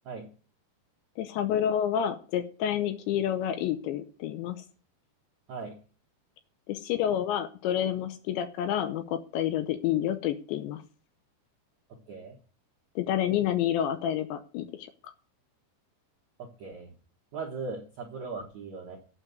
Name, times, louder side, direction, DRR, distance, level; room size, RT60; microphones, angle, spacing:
voice 1, 1.2-4.6 6.7-10.8 13.0-15.1, left 10 dB, 80° left, 9 dB, 2.8 m, -29 dB
voice 2, 16.4-16.9 17.3-19.0, right 4 dB, 70° right, -1 dB, 1.7 m, -38 dB
8.9 x 7.2 x 7.8 m, 0.39 s
omnidirectional pair, 5.6 m